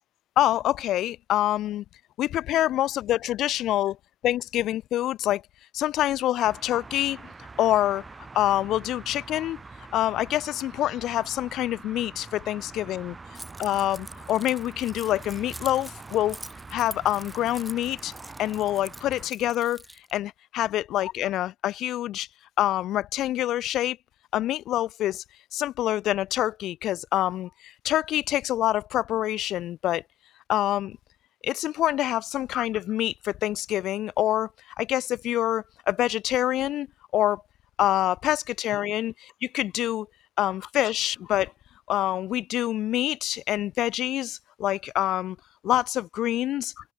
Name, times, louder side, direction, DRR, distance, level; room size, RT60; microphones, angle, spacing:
voice 1, 0.4-1.8 2.2-4.0 4.2-5.4 5.7-7.2 7.6-8.0 8.3-9.6 9.9-13.2 13.6-16.4 16.7-18.1 18.4-19.8 20.1-22.3 22.6-24.0 24.3-25.2 25.5-30.0 30.5-31.0 31.4-34.5 34.8-36.9 37.1-37.4 37.8-40.1 40.4-41.5 41.9-45.4 45.6-46.7, left 13 dB, 80° left, 0.5 m, -26 dB
sound 1, 6.4-19.3, right 3 dB, 25° right, 5.4 m, -44 dB
Keys jangling, 13.4-20.1, right 1 dB, 10° right, 5.1 m, -45 dB
cardioid pair, 90°, 0 cm